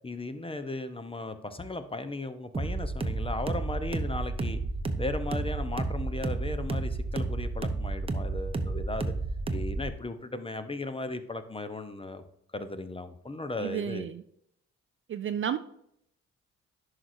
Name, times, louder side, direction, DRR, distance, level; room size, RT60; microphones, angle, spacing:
voice 1, 0.0-4.6 5.0-9.1 9.5-12.2 12.5-14.1, left 2 dB, 15° left, 10 dB, 0.9 m, -36 dB
sound 1, 2.5-9.9, right 3 dB, 15° right, 0.8 m, -31 dB
voice 2, 13.6-14.2 15.1-15.6, right 9 dB, 40° right, 11 dB, 0.4 m, -31 dB
11.0 x 4.8 x 2.7 m, 0.73 s
hypercardioid pair, 45°, 34 cm